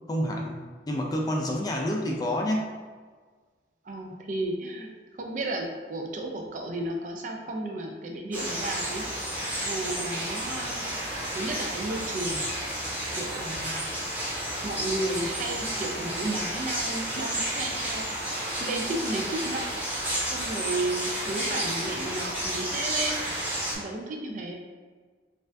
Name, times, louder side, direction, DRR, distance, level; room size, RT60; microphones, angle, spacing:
voice 1, 0.1-0.6 0.9-2.7, left 1 dB, 20° left, 0 dB, 0.4 m, -28 dB
voice 2, 3.8-4.9 5.2-9.0 9.7-11.0 11.3-12.5 13.1-13.8 14.6-19.8 20.3-23.2 23.8-24.5, right 2 dB, 45° right, 2 dB, 0.4 m, -33 dB
sound 1, 8.3-23.8, right 1 dB, 10° right, 0.8 m, -31 dB
4.1 x 2.4 x 2.6 m, 1.5 s
head